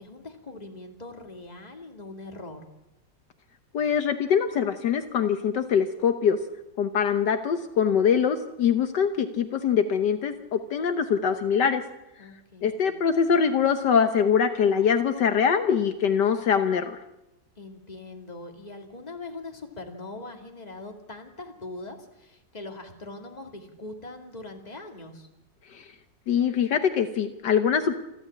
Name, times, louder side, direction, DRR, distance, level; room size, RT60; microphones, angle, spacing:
voice 1, 0.0-2.6 12.2-13.0 17.6-25.3, left 2 dB, 20° left, 3 dB, 2.5 m, -41 dB
voice 2, 3.7-6.4 6.8-11.8 12.6-17.0 25.7-25.8 26.3-27.9, left 7 dB, 70° left, 8 dB, 1.6 m, -23 dB
28.0 x 12.5 x 8.6 m, 0.91 s
omnidirectional pair, 1.9 m